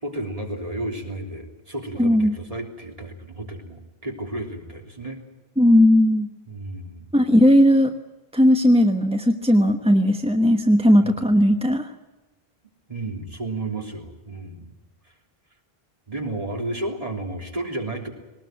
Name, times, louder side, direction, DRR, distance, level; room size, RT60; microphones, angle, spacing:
voice 1, 0.0-5.2 6.5-7.1 12.9-14.7 16.1-18.1, right 2 dB, 35° right, 1 dB, 3.6 m, -32 dB
voice 2, 2.0-2.4 5.6-6.3 7.1-7.9 8.3-11.9, equal, 5° right, 5 dB, 1.0 m, -17 dB
20.5 x 19.0 x 9.3 m, 1.1 s
omnidirectional pair, 1.0 m